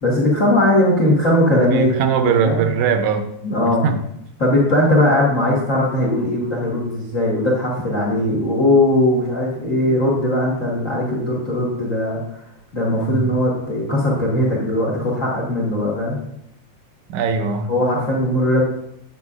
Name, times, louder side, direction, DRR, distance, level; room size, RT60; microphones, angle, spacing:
voice 1, 0.0-2.7 3.4-3.8 4.4-12.4 12.7-16.2 17.7-18.6, left 1 dB, 55° left, -4 dB, 0.8 m, -19 dB
voice 2, 1.6-3.3 3.6-4.0 13.0-13.3 17.1-17.7, right 6 dB, 80° right, 7 dB, 1.9 m, -20 dB
8.0 x 6.8 x 2.4 m, 0.76 s
omnidirectional pair, 3.5 m